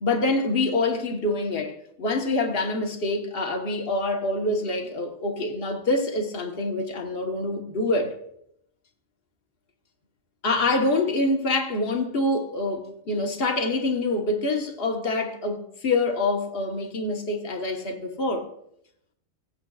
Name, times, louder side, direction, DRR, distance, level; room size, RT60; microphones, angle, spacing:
voice 1, 0.0-8.2 10.4-18.5, left 2 dB, 50° left, 1.5 m, -26 dB
17.5 x 9.0 x 2.4 m
omnidirectional pair, 1.3 m